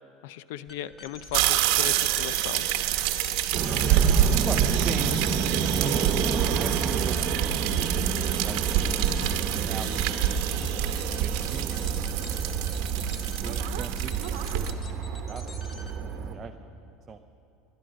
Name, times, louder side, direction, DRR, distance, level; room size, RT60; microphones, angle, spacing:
voice 1, 0.2-2.7 9.1-9.3, left 12 dB, 80° left, 16 dB, 0.5 m, -37 dB
sound 1, 0.7-16.1, left 3 dB, 25° left, 1.5 m, -46 dB
sound 2, 1.3-14.7, right 11 dB, 70° right, 0.9 m, -27 dB
sound 3, 3.5-16.4, right 5 dB, 40° right, 1.2 m, -30 dB
voice 2, 4.4-5.2 5.4-7.4 8.4-9.0 9.5-12.0 13.4-14.8 15.3-16.0 16.3-16.7 17.1-17.2, right 6 dB, 25° right, 6 dB, 0.5 m, -40 dB
18.5 x 11.0 x 6.3 m, 2.8 s
supercardioid pair, 135°, 0 cm